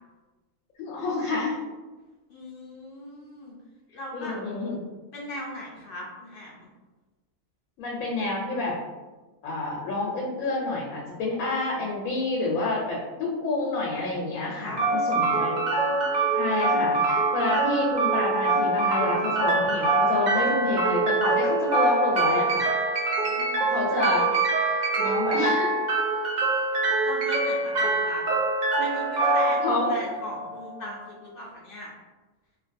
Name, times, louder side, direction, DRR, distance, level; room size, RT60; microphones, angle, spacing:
voice 1, 0.8-1.6 4.1-4.8 7.8-8.8 9.4-15.6 16.3-22.6 23.7-25.8 29.6-30.0, left 2 dB, 90° left, -3 dB, 1.0 m, -28 dB
voice 2, 2.3-3.5 3.9-4.4 5.1-6.7 14.6-16.4 23.2-24.0 26.5-26.6 27.0-28.3 28.8-31.9, left 1 dB, 70° left, -4 dB, 0.5 m, -39 dB
sound 1, 14.8-30.8, right 3 dB, 70° right, 0.4 m, -24 dB
2.6 x 2.2 x 2.5 m, 1.2 s
omnidirectional pair, 1.4 m